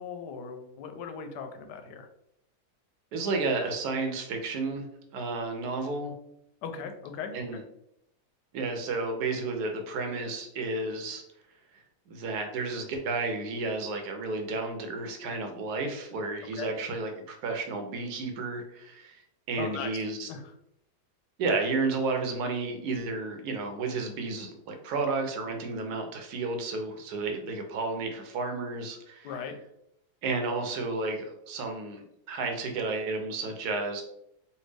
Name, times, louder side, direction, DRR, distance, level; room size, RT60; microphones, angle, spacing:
voice 1, 0.0-2.1 6.6-7.6 16.6-16.7 19.6-20.4 29.2-29.6, left 6 dB, 90° left, 6 dB, 1.2 m, -38 dB
voice 2, 3.1-4.9 5.1-6.1 7.3-7.6 8.5-11.2 12.1-19.2 19.5-20.3 21.4-29.3 30.2-34.0, right 3 dB, 75° right, 4 dB, 1.1 m, -32 dB
3.3 x 2.6 x 3.2 m, 0.78 s
omnidirectional pair, 1.7 m